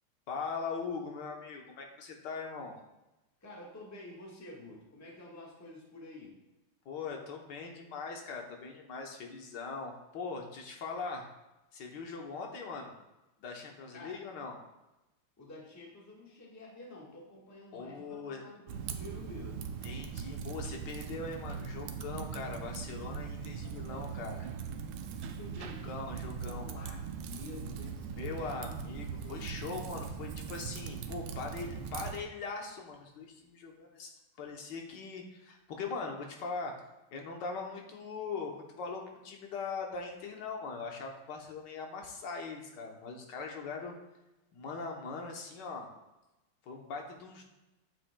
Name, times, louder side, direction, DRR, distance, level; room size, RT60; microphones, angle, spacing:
voice 1, 0.3-2.8 6.8-11.3 11.7-12.9 13.4-14.5 17.7-18.4 19.8-24.5 25.6-26.8 28.2-34.1 34.4-36.7 37.1-43.9 44.5-45.9 46.6-47.4, left 4 dB, 60° left, 2 dB, 1.5 m, -41 dB
voice 2, 3.4-6.4 13.9-14.2 15.4-19.8 25.4-28.7 29.2-29.6, left 1 dB, 10° left, -4 dB, 1.1 m, -50 dB
Typing, 18.7-32.2, right 6 dB, 80° right, 1.4 m, -40 dB
8.7 x 7.4 x 2.2 m, 0.99 s
omnidirectional pair, 2.3 m